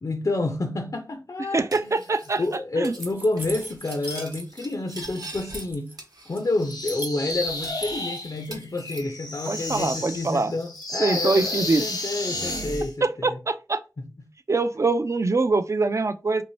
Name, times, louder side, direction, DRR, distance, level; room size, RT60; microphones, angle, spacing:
voice 1, 0.0-1.9 2.4-6.0 6.3-13.4 14.0-14.1, left 2 dB, 55° left, 0.4 m, -29 dB
voice 2, 1.5-2.4 2.8-3.0 9.5-10.5 11.0-11.8 13.0-13.8 14.5-16.4, right 3 dB, 45° right, 0.3 m, -24 dB
Cutlery silverware, 1.7-2.6 2.8-3.1 3.4-5.7 6.0-6.7 7.0-7.1 7.6-10.0 10.2-11.4, right 2 dB, 75° right, 1.0 m, -44 dB
sound 1, 3.0-4.7 5.0-5.9 6.4-7.9, right 1 dB, 30° right, 0.9 m, -38 dB
sound 2, 6.6-12.9, left 2 dB, 90° left, 0.8 m, -32 dB
2.9 x 2.7 x 3.0 m
wide cardioid pair, 45°, 7 cm